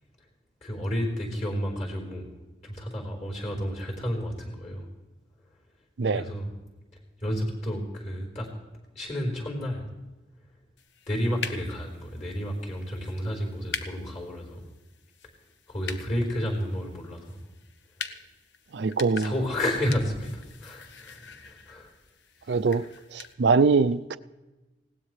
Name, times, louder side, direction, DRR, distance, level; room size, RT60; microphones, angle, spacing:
voice 1, 0.6-2.3 2.6-4.9 6.1-6.5 7.2-8.5 8.9-9.8 11.1-14.7 15.7-17.4 19.1-21.9 22.5-22.9, equal, 40° left, -1 dB, 4.2 m, -31 dB
sound 1, 10.8-23.3, left 6 dB, 85° left, 1.0 m, -43 dB
voice 2, 18.7-19.3 22.5-22.8 23.1-24.2, right 4 dB, 70° right, 13 dB, 0.5 m, -23 dB
20.5 x 17.0 x 3.3 m, 1.1 s
head